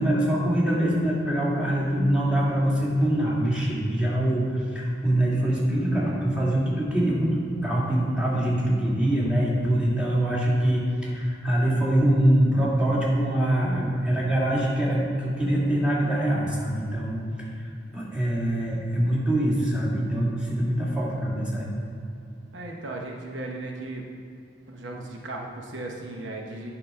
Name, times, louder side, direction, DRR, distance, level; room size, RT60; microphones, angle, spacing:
voice 1, 0.0-17.7 17.9-21.7, right 1 dB, 5° right, -7 dB, 1.9 m, -24 dB
voice 2, 22.5-24.0 24.7-26.7, right 2 dB, 80° right, 0 dB, 0.9 m, -36 dB
9.9 x 4.1 x 5.5 m, 2.5 s
head